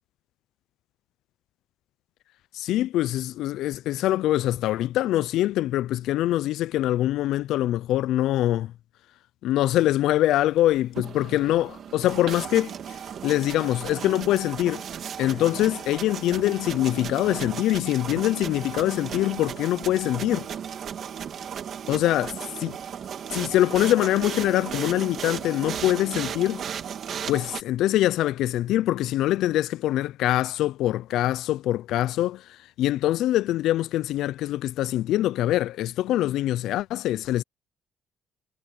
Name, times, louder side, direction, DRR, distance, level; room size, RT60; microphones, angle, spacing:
voice 1, 2.5-8.7 9.4-12.7 13.2-14.8 15.2-20.5 21.9-22.8 23.3-26.6 27.3-37.4, left 14 dB, 75° left, 0.3 m, -24 dB
sound 1, 10.8-27.6, right 8 dB, 45° right, 2.1 m, -35 dB
cardioid pair, 150°, 0 cm